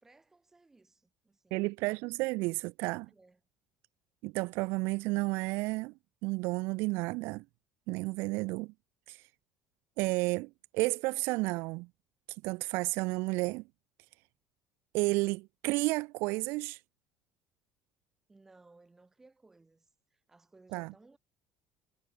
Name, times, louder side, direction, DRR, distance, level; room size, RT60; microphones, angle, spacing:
voice 1, 0.0-1.7 3.1-3.4 18.3-21.2, right 3 dB, 10° right, 1.4 m, -61 dB
voice 2, 1.5-3.1 4.2-5.9 6.2-7.4 7.9-8.7 9.1-9.2 10.0-11.9 12.4-13.6 14.9-16.8 20.7-20.9, right 24 dB, 70° right, 0.3 m, -32 dB
cardioid pair, 165°, 4 cm